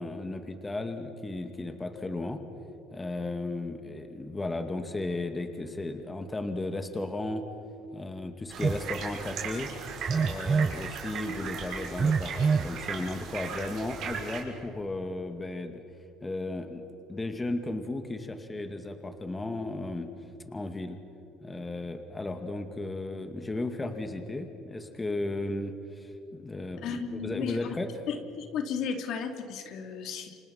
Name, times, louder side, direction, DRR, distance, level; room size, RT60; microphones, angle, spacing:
voice 1, 0.0-2.4 2.9-7.4 7.9-9.7 10.1-15.8 16.2-16.8 17.1-20.1 20.5-21.0 21.4-28.1, left 2 dB, 20° left, 6 dB, 2.3 m, -35 dB
sound 1, 8.5-14.4, right 6 dB, 60° right, 6.2 m, -38 dB
Telephone, 8.6-8.8 10.1-10.8 12.0-12.7, right 5 dB, 30° right, 0.7 m, -25 dB
voice 2, 26.8-27.7 28.1-30.4, left 6 dB, 65° left, 5 dB, 2.5 m, -34 dB
29.5 x 25.5 x 5.9 m, 2.7 s
supercardioid pair, 90°, 0 cm